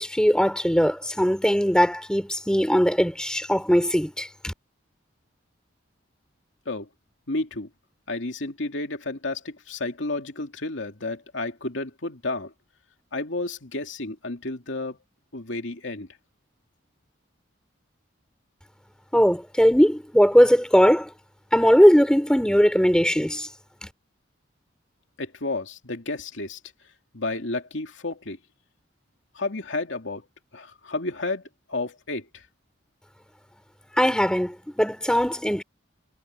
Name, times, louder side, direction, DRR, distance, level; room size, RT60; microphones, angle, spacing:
voice 1, 0.0-4.5 19.1-21.1 21.5-23.5 23.8-23.9 34.0-35.6, equal, 5° left, 3.4 m, -19 dB
voice 2, 7.3-7.7 8.1-12.5 13.1-15.0 15.3-16.1 25.2-26.6 27.1-28.4 29.3-30.3 30.5-31.4 31.7-32.5, left 2 dB, 80° left, 2.4 m, -31 dB
head